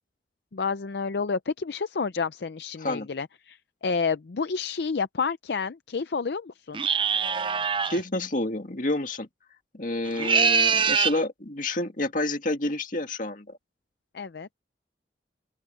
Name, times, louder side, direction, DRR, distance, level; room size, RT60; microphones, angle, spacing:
voice 1, 0.5-6.8 14.1-14.5, left 5 dB, 65° left, 0.5 m, -30 dB
sound 1, 6.7-8.0 10.0-11.2, right 6 dB, 30° right, 0.6 m, -23 dB
voice 2, 7.9-9.3 9.7-13.6, left 2 dB, 45° left, 2.1 m, -29 dB
open air
head